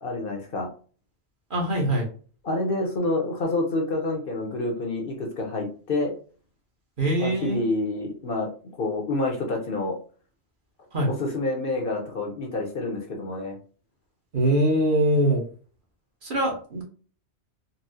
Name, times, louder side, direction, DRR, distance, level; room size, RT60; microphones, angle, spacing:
voice 1, 0.0-0.7 2.4-6.1 7.2-8.5 8.8-10.0 11.1-13.6, left 2 dB, 55° left, 2 dB, 0.8 m, -28 dB
voice 2, 1.5-2.1 7.0-7.6 10.9-11.1 14.3-15.4 16.2-16.8, right 1 dB, 50° right, -1 dB, 1.0 m, -23 dB
4.0 x 2.0 x 2.6 m, 0.39 s
omnidirectional pair, 1.2 m